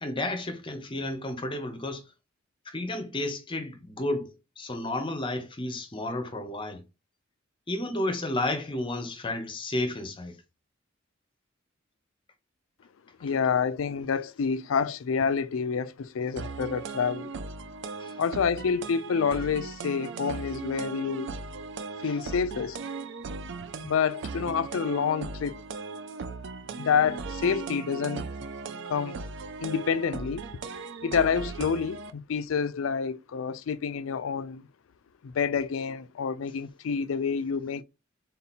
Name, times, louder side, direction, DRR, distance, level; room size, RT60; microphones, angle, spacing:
voice 1, 0.0-2.0 2.7-6.8 7.7-10.3 18.0-18.1 22.0-22.1, left 1 dB, 25° left, 0.7 m, -32 dB
voice 2, 13.2-17.3 18.2-21.3 22.0-22.8 23.8-25.6 26.8-28.3 28.9-29.2 29.6-30.4 31.0-34.7 35.2-37.8, left 6 dB, 70° left, 0.4 m, -28 dB
sound 1, 16.4-32.1, right 4 dB, 60° right, 0.4 m, -38 dB
3.8 x 2.8 x 4.2 m
head